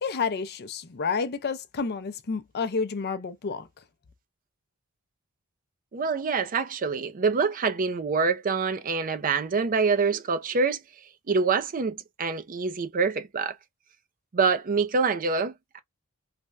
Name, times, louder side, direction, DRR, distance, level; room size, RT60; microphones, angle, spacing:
voice 1, 0.0-3.7, left 5 dB, 45° left, 0.5 m, -30 dB
voice 2, 5.9-10.8 11.3-13.6 14.3-15.8, right 4 dB, 40° right, 0.5 m, -26 dB
3.3 x 2.2 x 2.5 m
head